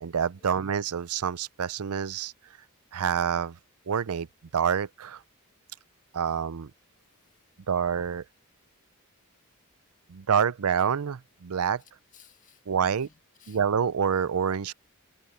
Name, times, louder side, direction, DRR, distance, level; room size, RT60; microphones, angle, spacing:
voice 1, 0.0-2.3 2.9-3.6 3.9-4.3 4.5-5.2 6.1-6.7 7.7-8.2 10.1-11.8 12.7-13.1 13.5-14.7, right 7 dB, 85° right, 0.5 m, -27 dB
voice 2, 7.0-7.7 12.1-13.6, left 8 dB, 35° left, 2.2 m, -60 dB
head